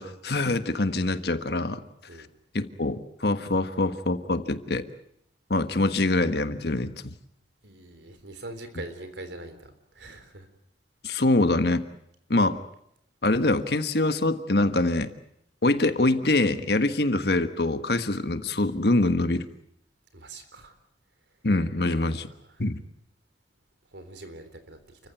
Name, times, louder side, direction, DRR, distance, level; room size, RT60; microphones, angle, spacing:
voice 1, 0.0-1.8 2.5-4.9 5.5-7.1 11.0-11.8 12.3-12.6 13.2-15.1 15.6-19.5 21.4-22.3 22.6-22.8, left 2 dB, 60° left, 10 dB, 1.4 m, -24 dB
voice 2, 7.6-10.5 20.1-20.7 21.8-22.1 23.9-25.0, right 2 dB, 80° right, 9 dB, 3.7 m, -43 dB
29.5 x 15.0 x 9.3 m, 0.76 s
head